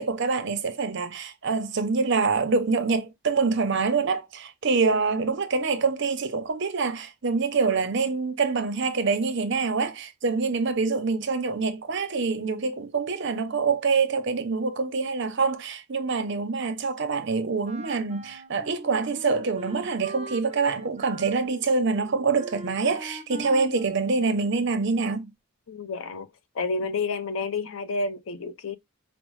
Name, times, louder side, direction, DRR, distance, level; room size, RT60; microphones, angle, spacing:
voice 1, 0.0-25.3, right 4 dB, 60° right, 0.7 m, -25 dB
Wind instrument woodwind instrument, 17.6-24.8, right 1 dB, 30° right, 0.8 m, -42 dB
voice 2, 25.7-26.3 26.5-28.8, left 3 dB, 85° left, 0.5 m, -30 dB
5.1 x 2.0 x 3.1 m
head